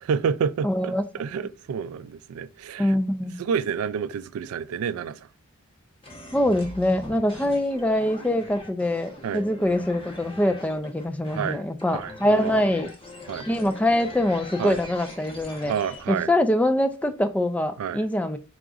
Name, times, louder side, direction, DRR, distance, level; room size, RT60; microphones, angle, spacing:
voice 1, 0.1-0.9 1.2-2.9 3.4-5.2 7.4-7.5 9.2-9.4 11.3-11.6 11.9-12.7 13.3-13.5 14.6-14.8 15.7-16.3 17.8-18.0, right 7 dB, 75° right, 0.3 m, -29 dB
voice 2, 0.6-1.0 2.8-3.3 6.3-12.9 13.5-15.7 16.1-18.4, left 1 dB, 5° left, 0.3 m, -24 dB
sound 1, 6.0-16.0, left 2 dB, 25° left, 0.9 m, -42 dB
4.8 x 3.8 x 2.4 m
head